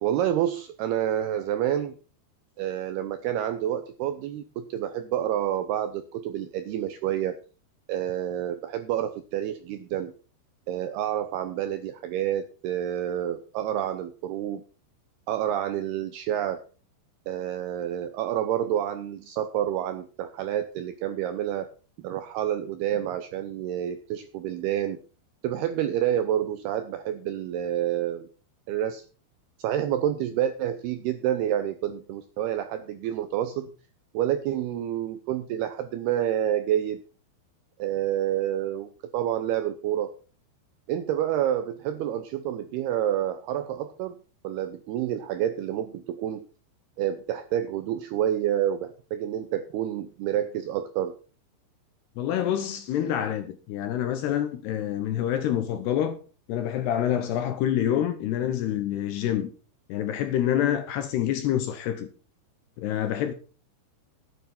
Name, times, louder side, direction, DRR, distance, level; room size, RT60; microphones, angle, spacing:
voice 1, 0.0-2.0 2.6-7.4 7.9-10.1 10.7-14.6 15.3-16.6 17.3-25.0 25.4-28.3 28.7-29.0 29.6-33.7 34.1-37.0 37.8-40.1 40.9-44.2 44.4-46.5 47.0-51.2, right 11 dB, 85° right, 2.3 m, -28 dB
voice 2, 52.2-56.2 56.5-59.5 59.9-62.1 62.8-63.3, left 10 dB, 75° left, 2.7 m, -27 dB
11.0 x 9.5 x 5.7 m
omnidirectional pair, 5.5 m